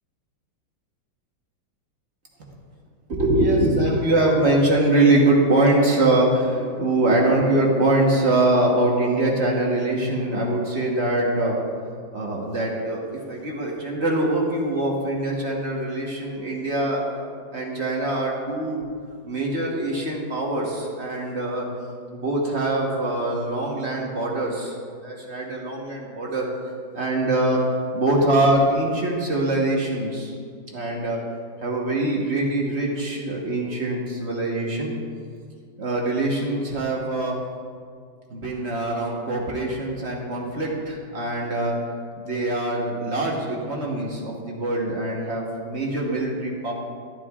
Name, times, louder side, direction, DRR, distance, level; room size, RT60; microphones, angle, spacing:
voice 1, 3.1-11.6 12.1-13.0 13.3-17.0 17.5-18.8 19.3-21.7 22.1-24.7 25.0-26.5 26.9-27.6 27.9-30.3 30.7-31.2 31.6-34.9 35.8-37.3 38.3-41.8 42.2-46.7, right 2 dB, 40° right, -2 dB, 1.3 m, -23 dB
12.0 x 11.0 x 2.4 m, 2.1 s
omnidirectional pair, 2.1 m